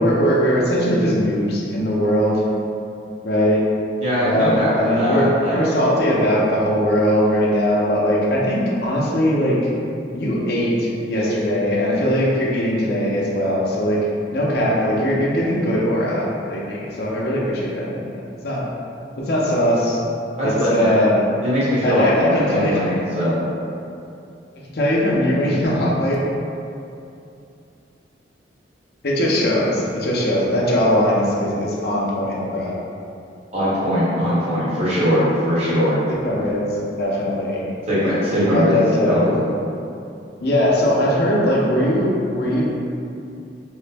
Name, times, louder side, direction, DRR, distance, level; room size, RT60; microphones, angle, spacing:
voice 1, 0.0-2.4 3.2-3.6 4.2-9.6 10.1-14.0 14.3-18.1 18.4-18.6 19.2-20.0 20.4-21.2 21.8-22.8 24.7-26.2 29.0-32.7 36.1-36.7 37.0-37.7 38.0-39.2 40.4-42.6, equal, 60° left, -4 dB, 0.6 m, -20 dB
voice 2, 4.0-5.6 20.4-21.0 21.4-23.4 33.5-36.0 37.9-38.8 39.1-39.4, equal, 35° right, -11 dB, 1.1 m, -20 dB
3.1 x 2.0 x 3.3 m, 2.6 s
head